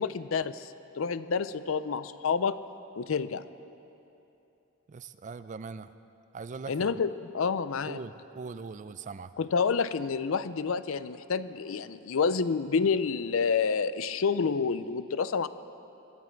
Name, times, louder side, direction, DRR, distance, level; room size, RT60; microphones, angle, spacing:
voice 1, 0.0-2.6 3.0-3.4 6.7-8.0 9.4-15.5, left 5 dB, 75° left, 14 dB, 0.5 m, -29 dB
voice 2, 4.9-5.9 6.3-6.9 7.9-9.3, right 4 dB, 35° right, 13 dB, 0.4 m, -41 dB
22.5 x 13.0 x 4.5 m, 2.8 s
head